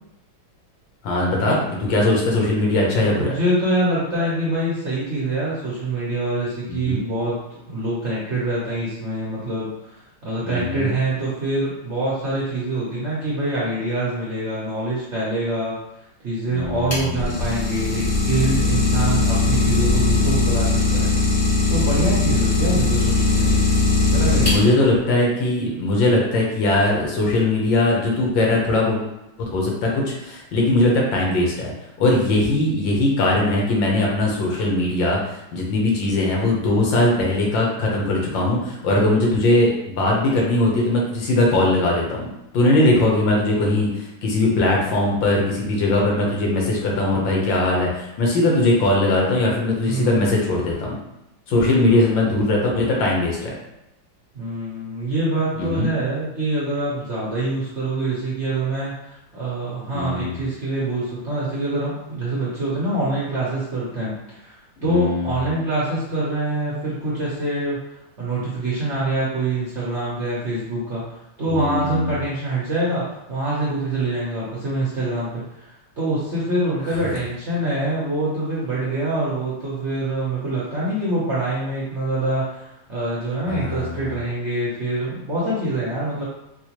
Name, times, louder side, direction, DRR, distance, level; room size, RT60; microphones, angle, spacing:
voice 1, 1.0-3.3 6.7-7.0 10.4-10.9 16.5-17.4 24.4-29.0 29.4-31.7 32.0-42.3 42.5-51.0 51.5-53.5 55.6-55.9 59.9-60.4 64.8-65.5 71.5-72.2 83.5-84.2, left 2 dB, 80° left, -2 dB, 1.6 m, -20 dB
voice 2, 3.0-10.0 10.2-15.8 16.2-21.1 21.7-23.7 24.1-24.7 49.8-50.2 51.5-52.1 54.3-58.9 59.3-67.8 68.2-71.0 71.4-86.3, right 2 dB, 50° right, -8 dB, 0.9 m, -25 dB
Idling, 16.6-25.0, left 3 dB, 30° left, 0.8 m, -19 dB
4.5 x 2.2 x 2.9 m, 0.88 s
omnidirectional pair, 2.1 m